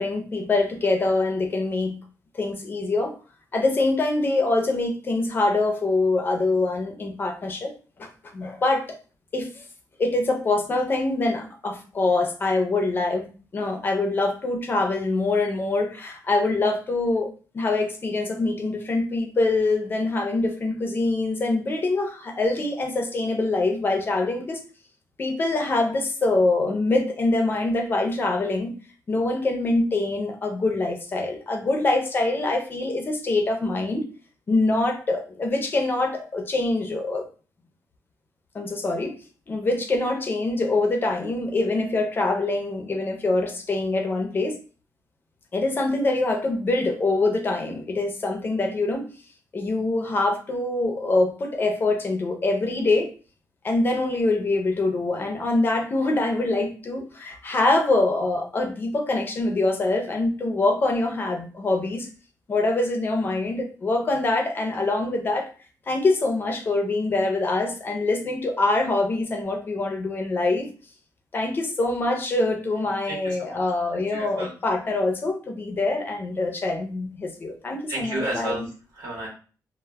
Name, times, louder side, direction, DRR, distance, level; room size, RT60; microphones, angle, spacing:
voice 1, 0.0-2.0 2.3-3.1 3.5-7.7 8.0-8.8 9.3-9.6 10.0-17.3 17.5-24.6 25.2-28.7 29.1-34.1 34.5-37.3 38.5-39.1 39.5-44.6 45.5-49.1 49.5-53.1 53.6-62.1 62.5-65.5 65.9-70.7 71.3-78.6, left 2 dB, 30° left, 4 dB, 0.4 m, -24 dB
voice 2, 73.0-73.6 74.1-74.5 77.9-79.3, right 1 dB, 90° right, -4 dB, 0.9 m, -32 dB
2.1 x 2.0 x 3.3 m, 0.38 s
wide cardioid pair, 170°, 7 cm